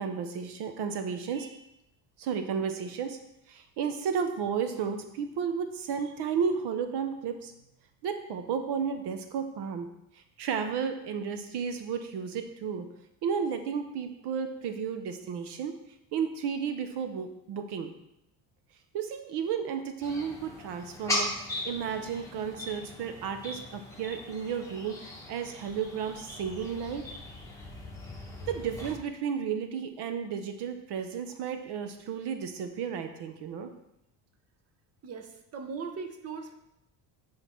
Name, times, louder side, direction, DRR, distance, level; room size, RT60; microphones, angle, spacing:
voice 1, 0.0-1.6 2.2-3.2 3.5-7.5 8.0-9.9 10.4-12.9 13.2-15.7 16.1-17.9 18.9-27.1 28.5-33.7, right 6 dB, 60° right, 7 dB, 0.9 m, -33 dB
sound 1, 20.0-28.9, left 1 dB, 5° left, 1.7 m, -39 dB
voice 2, 35.0-36.5, right 5 dB, 30° right, 5 dB, 1.0 m, -39 dB
9.1 x 4.8 x 4.5 m, 0.81 s
cardioid pair, 140°, 46 cm